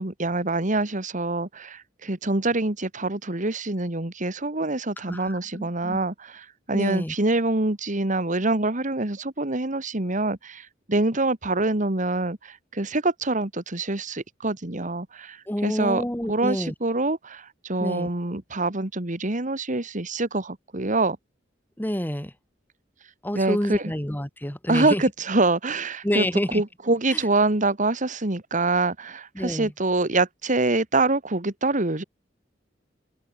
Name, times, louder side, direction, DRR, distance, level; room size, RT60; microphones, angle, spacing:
voice 1, 0.0-21.2 23.3-23.8 24.7-26.3 26.5-32.0, right 2 dB, 45° right, 2.0 m, -25 dB
voice 2, 5.1-6.0 6.7-7.2 15.5-16.7 17.8-18.1 21.8-22.3 23.2-25.0 26.0-26.6 27.1-27.2 29.3-29.7, equal, 10° left, 2.1 m, -28 dB
open air
head